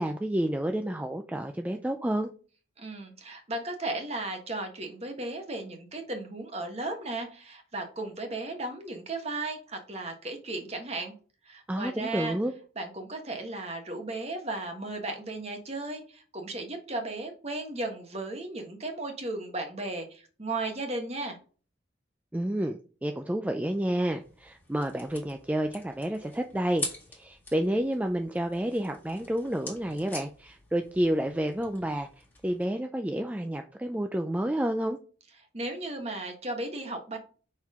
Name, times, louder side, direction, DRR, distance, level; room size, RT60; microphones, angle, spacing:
voice 1, 0.0-2.3 11.7-12.5 22.3-35.0, right 1 dB, 10° right, 5 dB, 0.3 m, -30 dB
voice 2, 2.8-11.1 11.4-12.4 12.8-21.4 35.5-37.2, right 2 dB, 35° right, 4 dB, 1.3 m, -35 dB
sound 1, 24.2-32.6, left 2 dB, 10° left, 1.8 m, -44 dB
5.8 x 4.5 x 3.6 m, 0.39 s
head